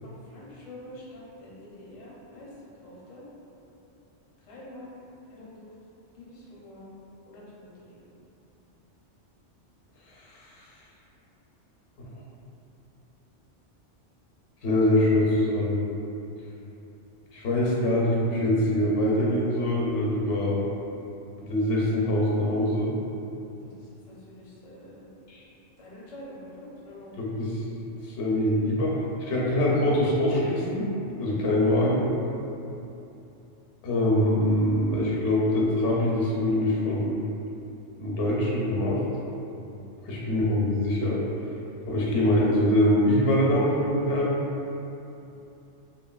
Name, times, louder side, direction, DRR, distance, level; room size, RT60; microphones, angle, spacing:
voice 1, 0.0-2.5 2.8-3.2 4.5-5.7 6.1-6.9 7.3-8.0 23.6-25.1 25.8-27.1 40.0-40.4, left 1 dB, 40° left, -7 dB, 0.5 m, -46 dB
voice 2, 10.1-10.5 12.0-12.1 14.6-15.8 17.3-20.6 21.4-22.9 25.3-25.4 27.2-27.6 28.0-30.9 31.2-32.1 33.8-37.2 38.0-39.0 40.0-41.2 41.9-44.4, left 1 dB, 80° left, -4 dB, 0.9 m, -24 dB
3.0 x 2.5 x 2.3 m, 2.8 s
omnidirectional pair, 1.2 m